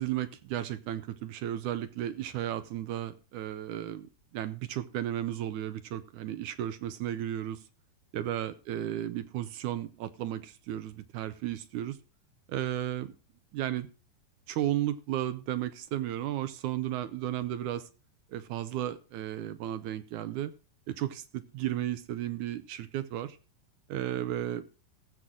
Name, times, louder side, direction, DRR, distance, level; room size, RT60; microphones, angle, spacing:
voice 1, 0.0-7.6 8.1-12.0 12.5-13.1 13.5-13.9 14.5-17.9 18.3-20.5 20.9-23.4 23.9-24.6, right 12 dB, 75° right, 13 dB, 1.9 m, -34 dB
19.0 x 7.7 x 3.6 m, 0.33 s
omnidirectional pair, 4.1 m